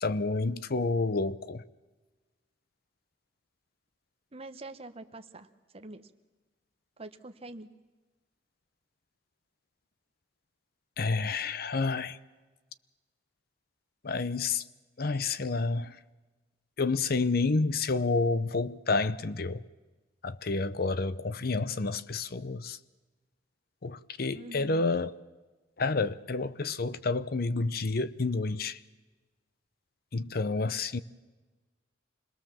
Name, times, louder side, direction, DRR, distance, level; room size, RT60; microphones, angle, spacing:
voice 1, 0.0-1.6 11.0-12.2 14.0-14.6 15.0-16.0 16.8-19.6 20.2-22.8 23.8-25.1 25.8-28.8 30.1-31.0, left 3 dB, 55° left, 0.8 m, -29 dB
voice 2, 4.3-6.1 7.0-7.7 24.3-24.8, right 2 dB, 35° right, 1.2 m, -45 dB
26.5 x 20.0 x 7.4 m
head